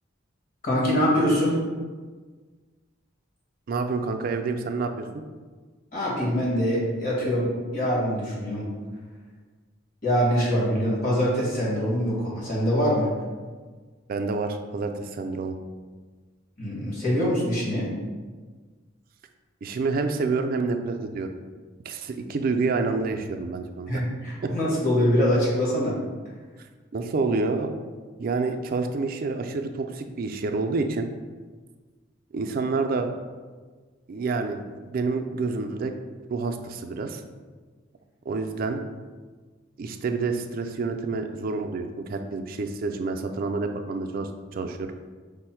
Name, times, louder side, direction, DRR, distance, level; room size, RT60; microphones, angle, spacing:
voice 1, 0.6-1.5 5.9-8.7 10.0-13.1 16.6-17.9 23.9-25.9, equal, 45° left, -6 dB, 1.5 m, -24 dB
voice 2, 3.7-5.2 14.1-15.6 19.6-21.3 21.9-24.0 24.4-24.5 26.9-27.7 28.2-31.1 32.3-33.1 34.1-35.9 36.3-37.2 38.3-38.8 39.8-44.9, right 3 dB, 45° right, 5 dB, 0.3 m, -28 dB
5.3 x 2.1 x 4.4 m, 1.4 s
head